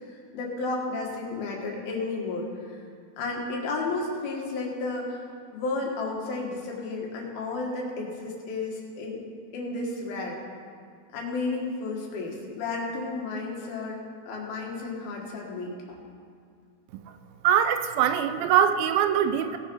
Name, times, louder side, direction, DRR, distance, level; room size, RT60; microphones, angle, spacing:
voice 1, 0.3-2.8 3.2-5.2 5.5-9.2 9.5-10.4 11.1-14.0 14.3-16.0, left 3 dB, 75° left, -1 dB, 3.5 m, -32 dB
voice 2, 17.4-19.6, right 9 dB, 80° right, 10 dB, 2.2 m, -22 dB
18.5 x 6.4 x 5.4 m, 2.2 s
omnidirectional pair, 4.4 m